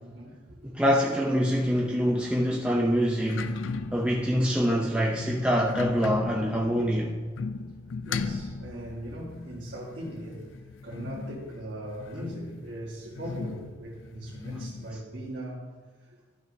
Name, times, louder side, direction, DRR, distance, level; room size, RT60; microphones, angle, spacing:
voice 1, 0.0-0.6 8.0-10.5 10.8-15.6 16.1-16.2, right 1 dB, 65° right, -7 dB, 1.6 m, -39 dB
voice 2, 0.7-3.5 3.9-7.2, equal, 5° right, -3 dB, 0.5 m, -25 dB
sound 1, 0.8-15.0, left 4 dB, 90° left, 0.4 m, -39 dB
12.0 x 6.1 x 2.7 m, 1.5 s
head